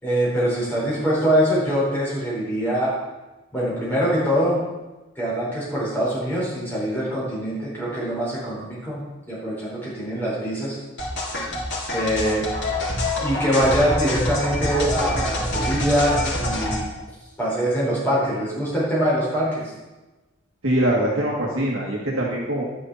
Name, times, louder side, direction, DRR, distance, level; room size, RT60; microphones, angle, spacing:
voice 1, 0.0-3.0 3.5-4.6 5.2-10.8 11.9-12.5 13.2-16.9 17.4-19.7, equal, 10° left, -8 dB, 4.7 m, -23 dB
sound 1, 11.0-16.8, left 1 dB, 55° left, 2.8 m, -26 dB
voice 2, 20.6-22.6, right 1 dB, 70° right, -4 dB, 2.0 m, -23 dB
12.5 x 9.9 x 4.3 m, 1.1 s
head